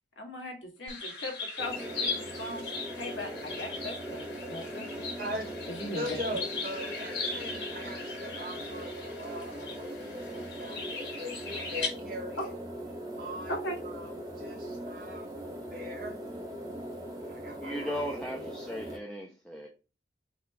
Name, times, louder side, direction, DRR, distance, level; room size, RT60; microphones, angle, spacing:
voice 1, 0.2-2.7 2.9-5.1 5.7-6.2 13.5-13.8, left 1 dB, 85° left, 1.2 m, -39 dB
sound 1, 0.9-11.9, left 4 dB, 65° left, 1.4 m, -39 dB
sound 2, 1.6-19.0, right 1 dB, 20° right, 0.7 m, -40 dB
voice 2, 4.9-5.5 5.9-12.5 13.2-13.6 13.8-16.3 17.3-18.5, equal, 50° right, 1.1 m, -41 dB
voice 3, 17.6-19.7, equal, 5° left, 0.3 m, -37 dB
3.9 x 2.2 x 4.5 m
head